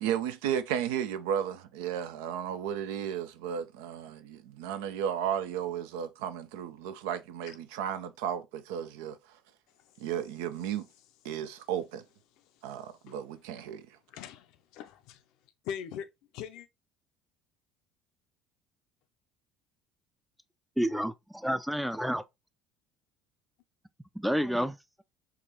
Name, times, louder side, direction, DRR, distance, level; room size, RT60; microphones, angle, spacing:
voice 1, 0.0-9.2 10.0-10.9 11.2-12.0 12.6-13.8, right 9 dB, 75° right, 0.4 m, -34 dB
voice 2, 9.7-10.1 10.6-10.7 11.3-11.4 12.3-13.7 14.1-15.2 15.6-16.1 16.3-16.7, left 8 dB, 65° left, 0.5 m, -44 dB
voice 3, 20.8-22.2 24.2-24.8, equal, 5° right, 0.4 m, -29 dB
4.6 x 2.4 x 2.8 m
hypercardioid pair, 65°, 0 cm